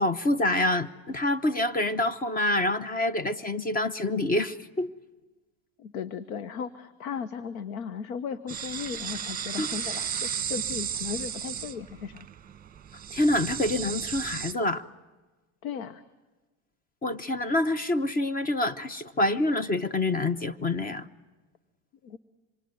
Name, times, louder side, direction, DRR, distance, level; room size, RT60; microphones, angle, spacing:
voice 1, 0.0-4.9 9.6-9.7 13.1-14.8 17.0-21.1, left 1 dB, 20° left, 16 dB, 1.0 m, -26 dB
voice 2, 5.8-12.3 15.6-16.0 22.0-22.2, left 7 dB, 90° left, 14 dB, 1.2 m, -36 dB
sound 1, 8.5-14.5, right 8 dB, 20° right, 1.3 m, -34 dB
26.5 x 23.5 x 9.5 m, 1.2 s
supercardioid pair, 130°, 40 cm